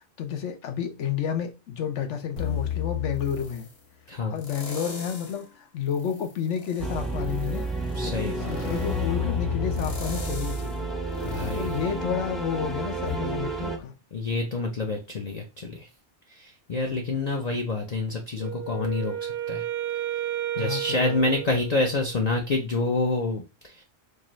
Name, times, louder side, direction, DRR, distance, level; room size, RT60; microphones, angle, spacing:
voice 1, 0.2-3.7 4.3-7.7 8.0-10.9 11.5-13.9 20.6-21.4, left 8 dB, 80° left, 1.1 m, -31 dB
sound 1, 2.4-3.8 4.4-5.4 5.9-12.6 13.1-13.2, left 9 dB, 60° left, 1.1 m, -34 dB
sound 2, 6.8-13.8, right 3 dB, ahead, 0.4 m, -31 dB
voice 2, 7.9-8.8 11.2-11.7 14.1-15.9 16.3-19.1 19.5-19.6 20.6-23.8, left 3 dB, 45° left, 0.6 m, -27 dB
Wind instrument woodwind instrument, 18.4-22.3, right 11 dB, 65° right, 0.8 m, -32 dB
4.6 x 2.5 x 3.1 m
omnidirectional pair, 1.2 m